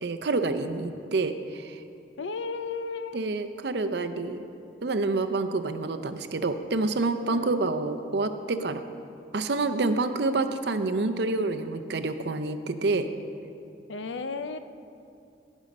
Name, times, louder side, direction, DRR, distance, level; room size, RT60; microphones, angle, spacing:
voice 1, 0.0-1.8 3.1-4.4 4.8-8.8 9.3-13.1, right 3 dB, 65° right, 9 dB, 0.6 m, -28 dB
voice 2, 2.2-3.2 7.3-7.7 13.9-14.6, left 4 dB, 85° left, 10 dB, 0.6 m, -34 dB
17.0 x 6.3 x 5.3 m, 2.5 s
head